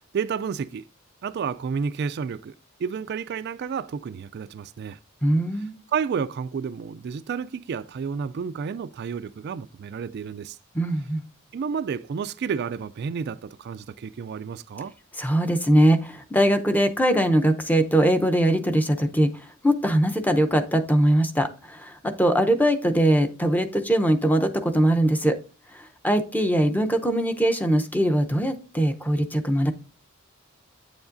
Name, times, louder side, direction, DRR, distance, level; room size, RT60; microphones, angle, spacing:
voice 1, 0.1-0.8 1.2-2.5 2.8-5.0 5.9-10.6 11.5-14.9, right 6 dB, 50° right, 0.3 m, -30 dB
voice 2, 5.2-5.8 10.7-11.2 15.2-19.3 19.6-25.4 25.7-29.7, right 1 dB, 10° left, 0.7 m, -21 dB
9.0 x 7.1 x 2.5 m
head